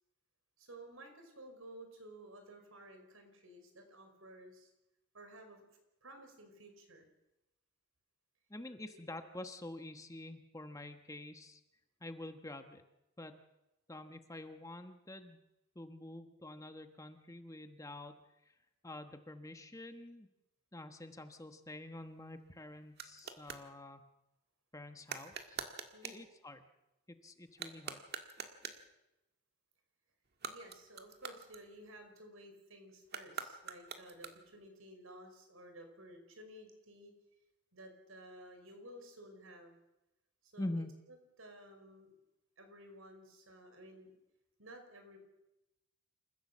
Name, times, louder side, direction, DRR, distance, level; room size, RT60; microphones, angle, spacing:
voice 1, 0.6-4.7 5.1-7.1 25.9-26.3 30.5-37.1 37.7-39.8 40.4-40.8 41.4-42.1 42.6-44.1 44.6-45.2, right 1 dB, 75° right, 5 dB, 5.2 m, -54 dB
voice 2, 8.5-11.6 12.0-12.8 13.2-13.4 13.9-15.4 15.7-18.5 18.8-20.3 20.7-24.0 24.7-25.6 26.0-26.6 27.1-28.0 40.6-40.9, left 1 dB, 15° left, 7 dB, 1.2 m, -47 dB
sound 1, 21.9-23.7 25.0-26.3 27.5-28.9 30.3-32.1 33.0-34.7, right 6 dB, 50° right, 1.8 m, -46 dB
28.0 x 15.5 x 7.4 m, 0.93 s
head